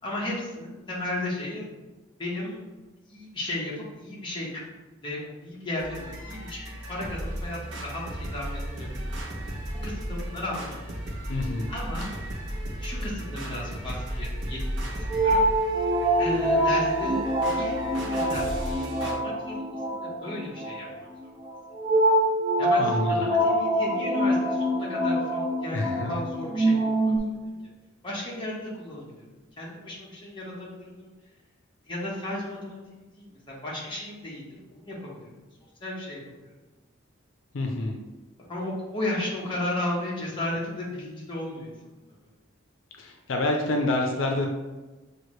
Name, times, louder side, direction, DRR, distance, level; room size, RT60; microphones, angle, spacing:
voice 1, 0.0-1.7 2.2-2.8 3.1-4.6 5.0-9.2 9.8-10.8 11.7-12.1 12.8-15.4 16.2-21.1 22.6-23.0 23.4-27.5 28.0-29.3 29.6-31.1 31.8-34.4 34.7-35.3 35.8-36.5 38.4-42.0, left 1 dB, 25° left, -6 dB, 1.2 m, -35 dB
sound 1, 5.8-19.1, equal, 70° right, 0.9 m, -35 dB
voice 2, 11.3-11.7 22.8-23.4 25.7-26.3 37.5-38.0 43.0-44.5, left 2 dB, 80° left, 2 dB, 0.5 m, -27 dB
sound 2, 14.2-27.2, right 1 dB, 25° right, 0.4 m, -25 dB
6.1 x 2.4 x 3.1 m, 1.2 s
head